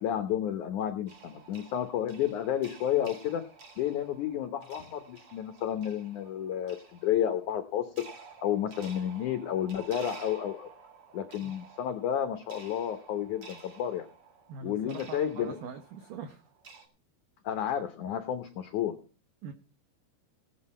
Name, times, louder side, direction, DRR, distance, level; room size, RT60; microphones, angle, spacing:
voice 1, 0.0-3.4 3.8-7.9 8.4-10.7 11.1-14.1 14.6-15.6 17.4-18.9, left 10 dB, 85° left, 8 dB, 1.7 m, -31 dB
sound 1, 1.1-16.8, right 5 dB, 40° right, 2.7 m, -52 dB
voice 2, 14.5-16.5 19.4-19.5, right 6 dB, 75° right, 7 dB, 2.0 m, -42 dB
17.0 x 9.6 x 4.2 m, 0.36 s
omnidirectional pair, 5.0 m